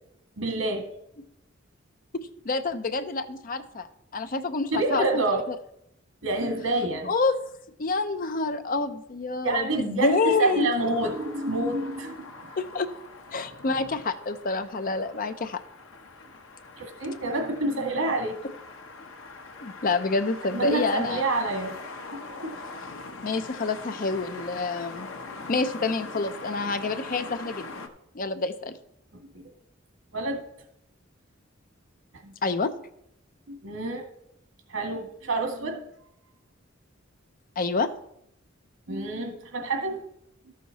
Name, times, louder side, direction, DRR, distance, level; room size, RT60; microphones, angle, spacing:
voice 1, 0.4-0.9 4.7-5.4 6.2-7.1 9.4-12.5 16.8-18.4 20.5-21.8 22.1-22.5 29.1-29.5 30.1-30.4 32.2-32.3 33.5-34.0 34.7-35.8 38.9-40.0 40.5-40.6, right 2 dB, 85° right, 4 dB, 2.0 m, -28 dB
voice 2, 2.1-5.2 7.0-7.4 7.8-10.7 12.6-12.9 13.3-15.6 19.6-21.2 23.2-25.1 25.5-27.7 28.1-28.7 32.4-32.7 37.6-37.9, left 3 dB, 45° left, 10 dB, 0.6 m, -28 dB
sound 1, 10.8-27.9, left 3 dB, 75° left, 1.0 m, -42 dB
13.0 x 6.3 x 4.1 m, 0.78 s
head